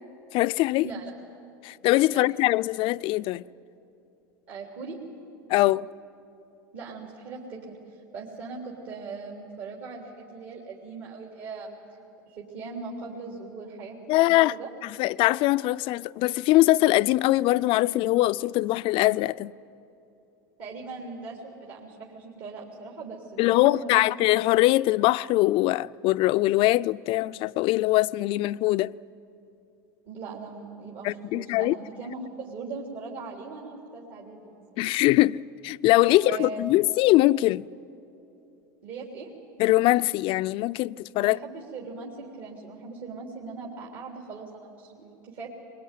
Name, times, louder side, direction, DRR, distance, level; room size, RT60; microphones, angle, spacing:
voice 1, 0.3-0.9 1.6-3.4 5.5-5.9 14.1-14.5 14.8-19.5 23.4-28.9 31.0-31.8 34.8-37.7 39.6-41.4, left 18 dB, 50° left, 0.5 m, -22 dB
voice 2, 4.5-5.0 6.7-11.8 12.3-14.0 14.2-14.7 20.6-24.1 30.1-34.6 36.1-36.6 38.8-39.3 41.2-45.5, right 4 dB, 55° right, 3.5 m, -39 dB
22.5 x 21.5 x 9.3 m
hypercardioid pair, 95°, 11 cm